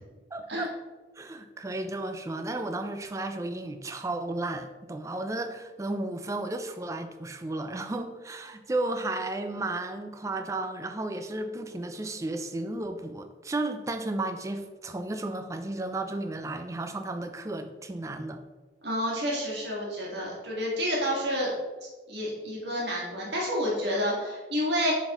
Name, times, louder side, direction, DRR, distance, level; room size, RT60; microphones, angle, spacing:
voice 1, 0.3-0.7 1.2-18.4, right 2 dB, 15° right, 7 dB, 0.4 m, -33 dB
voice 2, 18.8-21.5 21.8-24.9, equal, 75° right, -4 dB, 1.7 m, -29 dB
8.1 x 3.9 x 3.0 m, 1.3 s
head